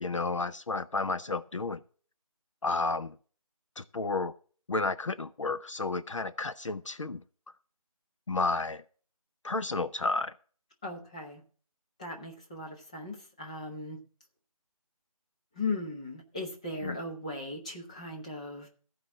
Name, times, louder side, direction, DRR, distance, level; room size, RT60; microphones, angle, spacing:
voice 1, 0.0-1.8 2.6-3.2 3.8-4.3 4.7-7.2 8.3-8.8 9.4-10.3 16.8-17.0, left 3 dB, 55° left, 12 dB, 0.6 m, -31 dB
voice 2, 10.8-11.4 12.0-14.0 15.5-18.7, left 2 dB, 10° left, -1 dB, 0.9 m, -37 dB
15.0 x 5.0 x 7.4 m, 0.43 s
figure-of-eight pair, 170°, 19 cm